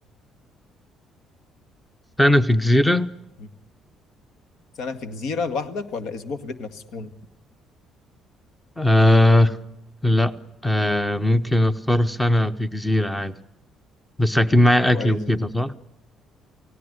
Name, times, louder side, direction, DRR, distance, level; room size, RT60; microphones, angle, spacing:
voice 1, 2.2-3.1 8.8-9.6 10.0-10.3 10.6-13.3 14.2-15.7, left 1 dB, 5° left, 0.9 m, -18 dB
voice 2, 4.8-7.1 14.9-15.3, left 4 dB, 60° left, 2.0 m, -30 dB
29.0 x 17.5 x 8.1 m
cardioid pair, 165°, 0 cm